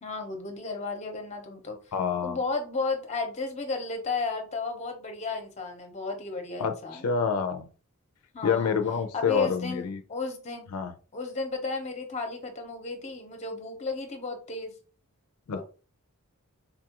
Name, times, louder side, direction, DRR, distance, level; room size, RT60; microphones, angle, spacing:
voice 1, 0.0-1.8 2.2-7.1 8.3-8.8 9.1-10.7 11.1-14.7 15.6-15.7, left 3 dB, 30° left, 4 dB, 0.7 m, -33 dB
voice 2, 1.9-2.4 6.6-7.7 8.4-10.0 10.7-10.9 15.5-15.6, left 6 dB, 90° left, 7 dB, 0.4 m, -27 dB
4.0 x 2.3 x 2.9 m, 0.37 s
head